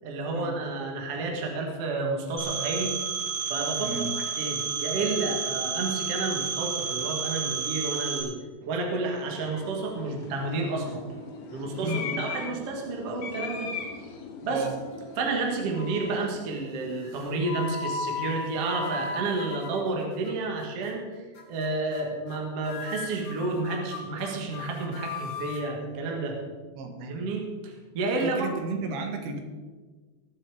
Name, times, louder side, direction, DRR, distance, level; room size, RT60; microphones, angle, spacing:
voice 1, 0.0-2.9 3.5-11.0 11.5-13.7 14.4-14.6 15.2-26.4 27.0-28.5, right 3 dB, 50° right, 1 dB, 2.3 m, -31 dB
Telephone, 2.4-8.2, right 6 dB, 30° right, 2.7 m, -31 dB
voice 2, 3.8-4.1 11.8-12.2 14.5-14.7 26.7-27.2 28.2-29.4, right 3 dB, 80° right, 4 dB, 3.3 m, -33 dB
sound 1, 9.2-17.7, left 5 dB, 75° left, 3.2 m, -40 dB
sound 2, 14.8-15.4 15.7-16.2 17.0-20.3 20.6-20.9 21.4-21.7 21.9-22.4 22.6-25.7, left 4 dB, 60° left, 3.7 m, -37 dB
20.5 x 7.1 x 4.9 m, 1.4 s
omnidirectional pair, 4.3 m